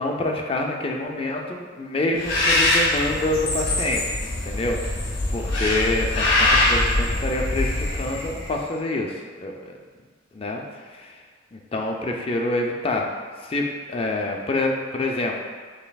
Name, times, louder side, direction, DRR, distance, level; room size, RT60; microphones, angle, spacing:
voice 1, 0.0-4.8 5.3-9.7 10.3-10.6 10.9-11.2 11.5-13.1 13.4-13.6 13.9-15.4, left 2 dB, 30° left, 1 dB, 0.4 m, -27 dB
Bird, 2.2-8.6, left 2 dB, 60° left, 1.1 m, -23 dB
6.3 x 3.3 x 2.3 m, 1.5 s
head